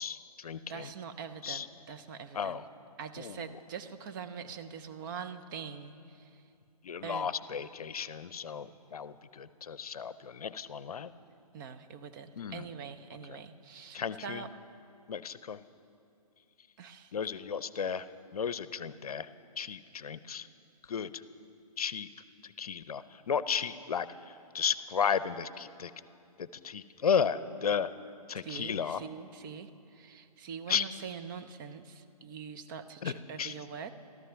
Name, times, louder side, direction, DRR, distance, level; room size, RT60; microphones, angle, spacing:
voice 1, 0.0-0.9 1.4-1.7 2.3-2.7 3.2-3.6 6.8-11.1 12.3-12.7 13.3-13.4 13.9-14.4 15.1-15.6 17.1-19.3 19.6-20.5 20.8-21.2 21.8-22.1 22.4-25.9 26.4-27.9 28.3-29.0 30.7-30.8 33.0-33.1 33.4-33.5, left 7 dB, 65° left, 15 dB, 0.6 m, -34 dB
voice 2, 0.7-2.6 3.0-6.4 7.0-7.3 11.5-14.5 16.8-17.1 28.4-33.9, right 6 dB, 30° right, 8 dB, 0.7 m, -43 dB
14.5 x 13.5 x 5.7 m, 2.5 s
figure-of-eight pair, 135°, 20 cm